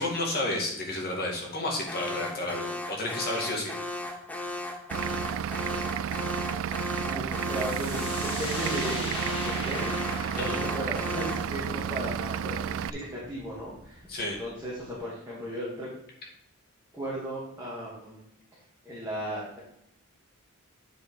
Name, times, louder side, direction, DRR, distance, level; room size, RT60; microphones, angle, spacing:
voice 1, 0.0-3.8 10.4-10.6 14.1-14.4, left 2 dB, 45° left, -1 dB, 2.0 m, -31 dB
Alarm, 1.9-11.6, left 2 dB, 5° left, 0.8 m, -36 dB
Vehicle / Engine, 4.9-12.9, right 8 dB, 65° right, 0.3 m, -32 dB
voice 2, 7.1-15.9 16.9-18.2 18.8-19.6, equal, 10° right, -9 dB, 2.3 m, -36 dB
sound 1, 7.3-14.9, left 1 dB, 25° left, 2.0 m, -40 dB
9.1 x 5.2 x 4.7 m, 0.78 s
head